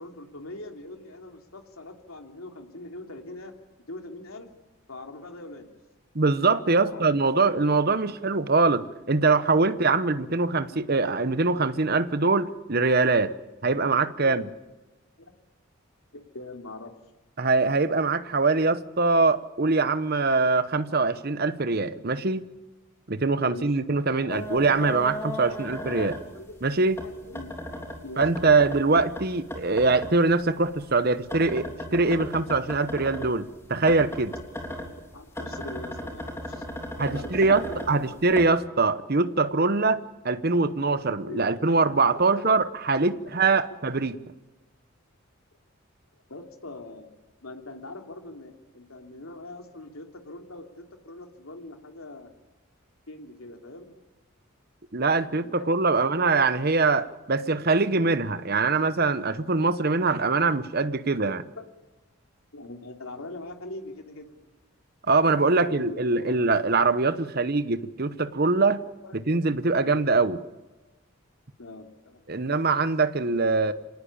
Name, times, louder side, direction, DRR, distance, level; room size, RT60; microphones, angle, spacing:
voice 1, 0.0-3.5 3.9-4.5 4.9-5.7 6.8-7.0 14.2-14.4 15.2-15.3 16.1-16.9 23.4-23.6 24.1-24.3 25.5-25.6 26.0-26.1 26.3-26.6 27.0-27.5 28.0-28.2 35.1-36.6 37.1-38.1 41.2-41.4 42.2-42.5 43.2-43.5 46.3-47.1 47.4-52.3 53.1-54.0 55.4-56.2 62.5-64.3 65.5-66.3 69.0-69.1 71.6-72.5, left 2 dB, 90° left, 3.1 m, -42 dB
voice 2, 6.1-13.3 13.6-14.4 17.4-22.5 23.1-26.1 26.6-27.0 28.2-31.7 31.9-34.3 37.0-44.2 54.9-61.4 65.1-68.8 69.1-70.4 72.3-73.7, right 3 dB, 45° right, 1.0 m, -23 dB
sound 1, 24.3-26.6 26.9-30.1 30.4-33.3 33.8-38.5, equal, 10° left, 3.4 m, -36 dB
26.5 x 19.0 x 8.8 m
head